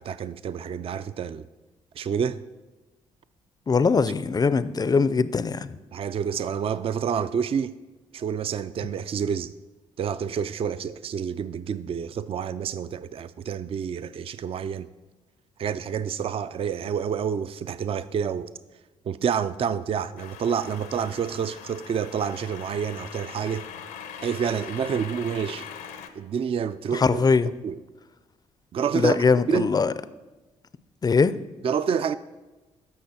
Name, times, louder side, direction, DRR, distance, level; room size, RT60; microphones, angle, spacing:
voice 1, 0.0-1.4 2.0-2.4 5.9-7.8 8.1-9.5 10.0-14.9 15.6-18.5 19.1-23.7 24.2-25.7 26.1-27.8 28.7-29.2 29.5-29.7 31.6-32.2, right 7 dB, 40° right, 0.4 m, -28 dB
voice 2, 3.7-5.8 26.9-27.5 28.9-29.9 31.0-31.4, left 5 dB, 25° left, 0.4 m, -21 dB
sound 1, 20.2-26.1, left 8 dB, 75° left, 0.6 m, -41 dB
15.0 x 5.7 x 2.8 m
hypercardioid pair, 45°, 15 cm